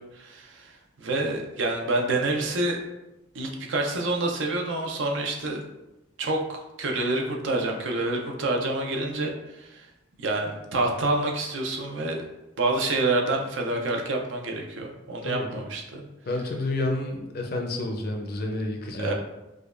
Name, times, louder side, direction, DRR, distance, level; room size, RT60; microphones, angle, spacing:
voice 1, 0.0-2.8 3.3-5.6 6.2-9.9 10.2-12.2 12.6-16.0 19.0-19.1, right 2 dB, 70° right, 1 dB, 0.6 m, -27 dB
voice 2, 16.3-19.1, left 2 dB, 50° left, 2 dB, 0.5 m, -29 dB
4.8 x 2.2 x 2.4 m, 0.98 s
head